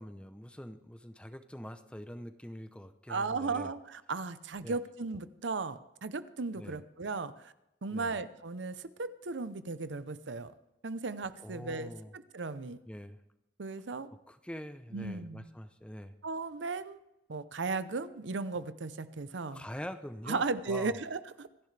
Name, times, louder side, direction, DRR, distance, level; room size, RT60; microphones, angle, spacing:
voice 1, 0.0-3.7 4.6-4.8 6.5-6.8 7.9-8.2 11.4-12.1 12.9-13.2 14.3-16.1 19.5-21.0, equal, 5° left, 10 dB, 0.7 m, -44 dB
voice 2, 3.1-7.5 7.8-10.5 10.8-12.8 13.6-14.1 14.9-15.5 16.2-17.0 17.3-19.7 20.3-21.5, right 4 dB, 85° right, 13 dB, 0.7 m, -36 dB
26.5 x 10.5 x 3.4 m, 0.90 s
head